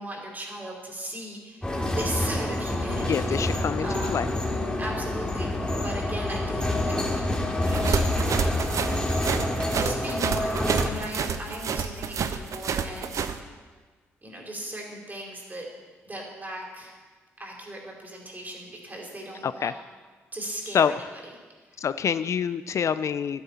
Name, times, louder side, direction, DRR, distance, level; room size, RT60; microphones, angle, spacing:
voice 1, 0.0-4.3 4.8-8.4 9.7-13.3 14.2-15.7 16.0-17.0 17.4-19.7 20.3-21.0 21.7-21.9, right 1 dB, 30° right, -1 dB, 3.8 m, -38 dB
sound 1, 1.6-10.9, left 1 dB, 15° left, 2.3 m, -27 dB
voice 2, 3.0-4.3 19.4-19.7 20.7-21.1 21.8-23.4, left 7 dB, 50° left, 14 dB, 0.4 m, -26 dB
sound 2, 7.7-13.4, right 6 dB, 55° right, 0.7 m, -29 dB
12.0 x 11.5 x 4.2 m, 1.4 s
hypercardioid pair, 45°, 6 cm